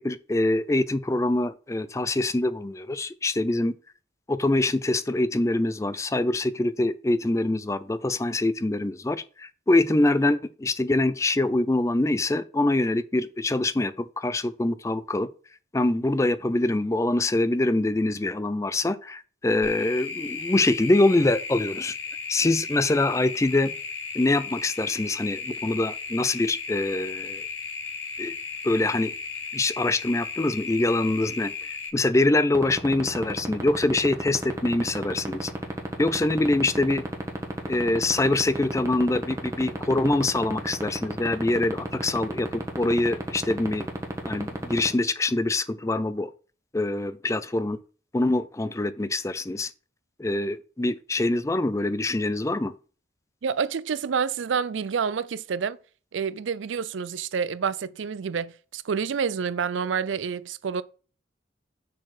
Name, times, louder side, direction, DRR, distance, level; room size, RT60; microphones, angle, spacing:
voice 1, 0.0-3.7 4.3-15.3 15.7-21.9 22.3-23.7 24.1-27.4 28.2-28.3 28.6-29.1 29.5-31.5 31.9-35.5 36.0-37.0 37.7-43.9 44.2-46.3 46.7-47.8 48.1-49.7 50.2-52.7, left 2 dB, 15° left, 0.4 m, -24 dB
sound 1, 19.6-31.9, left 5 dB, 85° left, 1.5 m, -35 dB
sound 2, 32.5-44.9, right 1 dB, 15° right, 1.2 m, -29 dB
voice 2, 53.4-55.8 56.1-60.8, right 6 dB, 90° right, 0.4 m, -28 dB
6.4 x 4.1 x 6.0 m
head